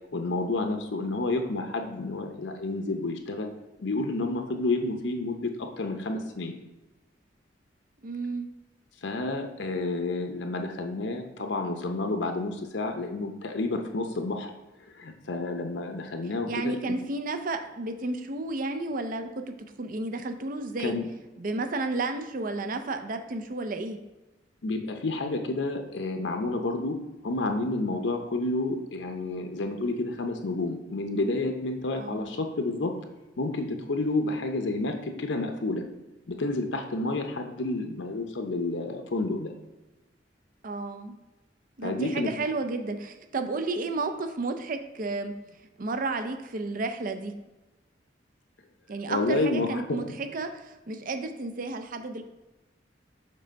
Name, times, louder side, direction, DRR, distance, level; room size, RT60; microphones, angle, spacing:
voice 1, 0.1-3.5 3.8-6.6 9.0-14.5 14.9-17.0 20.8-21.1 24.6-27.0 27.2-32.9 33.4-35.8 36.3-39.5 41.8-42.3 49.1-50.0, left 2 dB, 80° left, 5 dB, 0.7 m, -30 dB
voice 2, 8.0-8.5 16.5-21.0 21.4-24.0 32.0-32.4 40.6-41.2 41.8-45.3 45.8-47.3 48.9-52.2, right 3 dB, 50° right, 7 dB, 0.5 m, -32 dB
6.6 x 3.3 x 5.1 m, 1.1 s
head